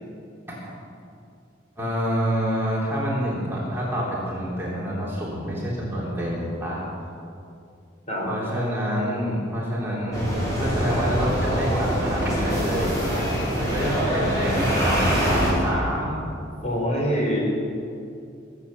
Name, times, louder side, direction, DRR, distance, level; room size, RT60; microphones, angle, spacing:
voice 1, 1.8-6.8 8.2-10.2 10.6-13.0 13.6-16.1, equal, 15° right, -7 dB, 3.2 m, -27 dB
sound 1, 10.1-15.5, equal, 20° left, 4.3 m, -24 dB
voice 2, 16.6-17.4, equal, 40° left, -3 dB, 4.1 m, -24 dB
19.0 x 8.4 x 7.5 m, 2.5 s
head